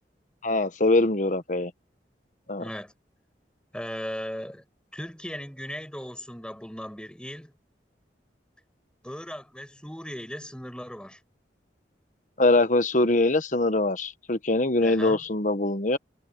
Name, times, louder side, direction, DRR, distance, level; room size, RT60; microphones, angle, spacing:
voice 1, 0.4-1.7 2.5-2.6 12.4-16.0, left 2 dB, 45° left, 1.2 m, -23 dB
voice 2, 2.6-2.9 3.7-4.6 4.9-7.5 9.0-11.2 14.8-15.2, equal, 5° left, 5.7 m, -37 dB
head